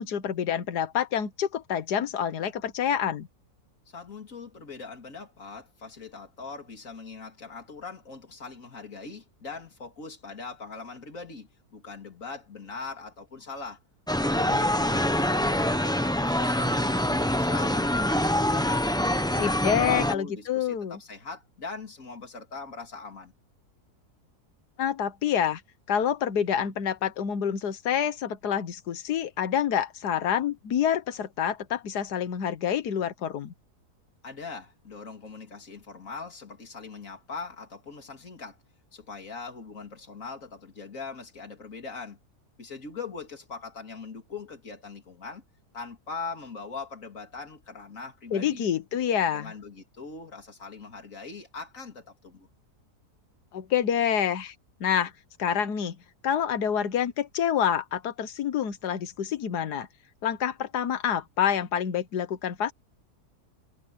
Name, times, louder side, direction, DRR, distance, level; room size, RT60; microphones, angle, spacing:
voice 1, 0.0-3.3 19.3-21.0 24.8-25.6 25.9-33.5 48.3-49.5 53.5-54.5 54.8-55.1 55.4-56.0 56.2-59.9 60.2-62.7, left 9 dB, 85° left, 1.7 m, -27 dB
voice 2, 3.9-13.8 14.2-18.9 19.3-23.3 34.2-38.6 38.9-42.2 42.6-45.4 45.7-48.6 49.3-52.5, left 4 dB, 55° left, 3.5 m, -41 dB
sound 1, 14.1-20.1, left 1 dB, 5° left, 0.5 m, -25 dB
omnidirectional pair, 1.7 m